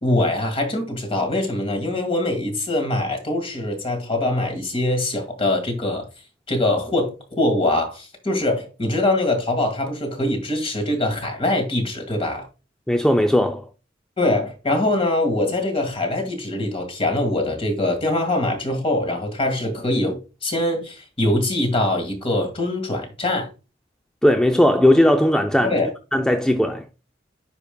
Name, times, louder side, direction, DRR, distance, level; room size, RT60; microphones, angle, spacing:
voice 1, 0.0-6.1 6.5-12.5 14.2-23.5 25.6-25.9, left 1 dB, 30° left, 2.0 m, -23 dB
voice 2, 12.9-13.7 24.2-25.8 26.1-26.9, left 1 dB, 5° left, 0.4 m, -17 dB
9.3 x 5.2 x 2.3 m
head